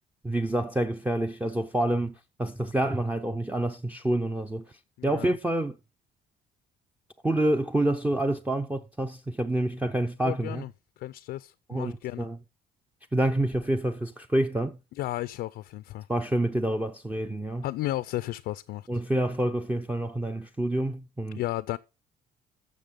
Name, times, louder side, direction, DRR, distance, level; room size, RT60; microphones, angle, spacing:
voice 1, 0.2-5.8 7.2-10.6 11.7-12.4 13.1-14.8 16.1-17.6 18.9-21.4, right 1 dB, 10° right, 0.5 m, -28 dB
voice 2, 5.0-5.4 10.2-10.7 11.0-12.3 15.0-16.1 17.6-18.9 21.3-21.8, left 15 dB, 70° left, 0.5 m, -33 dB
12.0 x 6.7 x 3.7 m
cardioid pair, 110°, 17 cm